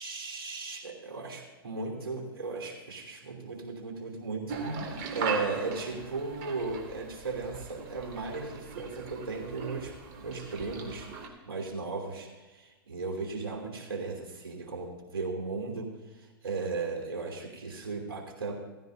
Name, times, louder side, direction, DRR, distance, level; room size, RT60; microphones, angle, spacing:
voice 1, 0.0-18.6, right 3 dB, 80° right, 1 dB, 2.9 m, -36 dB
sound 1, 4.5-11.3, right 4 dB, 45° right, 2.3 m, -39 dB
15.5 x 15.0 x 2.6 m, 1.2 s
hypercardioid pair, 110°, 13 cm